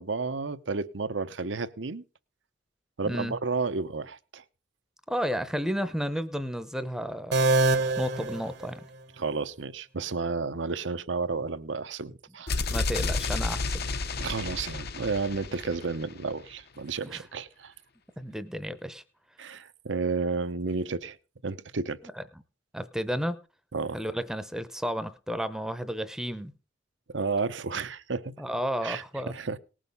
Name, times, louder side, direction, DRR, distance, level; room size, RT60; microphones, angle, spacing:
voice 1, 0.0-2.0 3.0-4.4 9.2-12.7 14.2-17.7 19.4-21.2 21.4-22.0 23.7-24.0 27.1-28.3 28.8-29.6, right 4 dB, 80° right, 0.8 m, -32 dB
voice 2, 5.1-7.4 8.0-8.8 12.7-13.9 17.1-17.2 18.2-19.0 22.2-22.3 22.7-23.4 23.9-26.5 28.4-29.3, equal, 5° right, 0.7 m, -32 dB
sound 1, 7.3-9.2, right 2 dB, 65° right, 1.1 m, -26 dB
sound 2, 12.5-16.3, left 3 dB, 60° left, 0.9 m, -31 dB
19.0 x 6.3 x 5.4 m
head